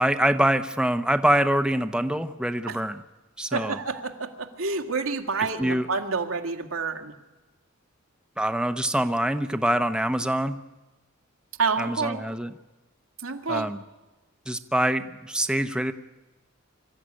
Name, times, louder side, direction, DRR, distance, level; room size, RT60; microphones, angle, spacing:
voice 1, 0.0-3.0 3.4-3.8 5.6-5.9 8.4-10.6 11.8-12.5 13.5-13.8 14.5-15.9, right 1 dB, 5° right, 8 dB, 0.8 m, -24 dB
voice 2, 3.5-7.1 11.6-12.2 13.2-13.7, right 4 dB, 80° right, 4 dB, 1.9 m, -28 dB
25.0 x 14.0 x 9.9 m, 1.1 s
head